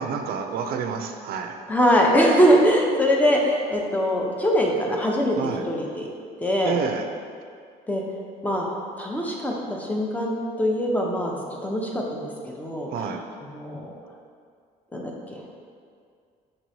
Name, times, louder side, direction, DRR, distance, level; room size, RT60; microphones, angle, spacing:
voice 1, 0.0-1.6 5.4-5.6 6.7-7.1 12.9-13.3, right 6 dB, 65° right, 6 dB, 0.4 m, -29 dB
voice 2, 1.7-5.4 5.7-6.1 6.4-6.8 7.9-8.0 8.4-8.7 9.0-11.3 11.6-12.3 12.5-12.9 13.5-13.9 14.9-15.4, equal, 10° left, -1 dB, 0.6 m, -22 dB
6.4 x 3.0 x 2.6 m, 2.2 s
cardioid pair, 110°, 17 cm